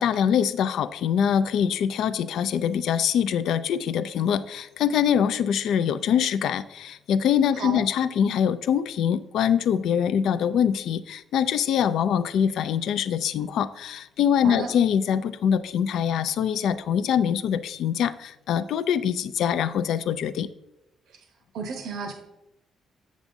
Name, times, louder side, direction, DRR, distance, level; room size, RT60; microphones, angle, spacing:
voice 1, 0.0-20.5, left 8 dB, 75° left, 13 dB, 0.3 m, -24 dB
voice 2, 21.5-22.1, right 4 dB, 80° right, 4 dB, 0.9 m, -32 dB
7.1 x 7.1 x 2.6 m, 0.91 s
cardioid pair, 90°, 0 cm